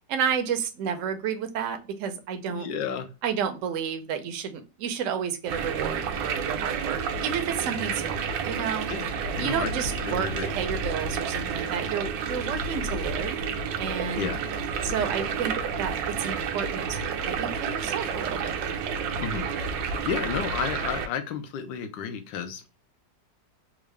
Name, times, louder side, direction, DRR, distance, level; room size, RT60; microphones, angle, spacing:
voice 1, 0.1-2.7 3.2-8.2 8.4-8.9 9.4-13.3 13.8-14.3 14.8-17.0 17.3-18.6, right 7 dB, 65° right, 7 dB, 0.8 m, -31 dB
voice 2, 2.5-3.1 8.9-9.1 9.4-9.7 10.0-10.5 14.1-14.4 19.2-19.4 19.8-22.6, left 7 dB, 90° left, 8 dB, 1.3 m, -32 dB
sound 1, 5.5-21.1, right 6 dB, 90° right, 1.3 m, -30 dB
3.7 x 2.5 x 3.1 m, 0.30 s
omnidirectional pair, 1.9 m